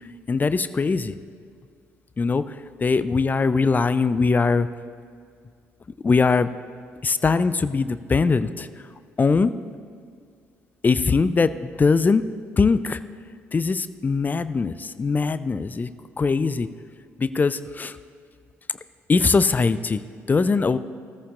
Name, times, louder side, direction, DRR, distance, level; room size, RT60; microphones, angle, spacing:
voice 1, 0.3-1.1 2.2-2.4 2.8-4.7 6.0-6.5 7.0-8.7 9.2-9.6 10.8-12.2 12.6-13.0 13.5-15.9 16.2-16.7 17.2-17.9 19.1-20.0 20.3-20.8, left 4 dB, 25° left, 14 dB, 0.4 m, -21 dB
16.5 x 14.0 x 2.5 m, 2.1 s
figure-of-eight pair, 45°, 7 cm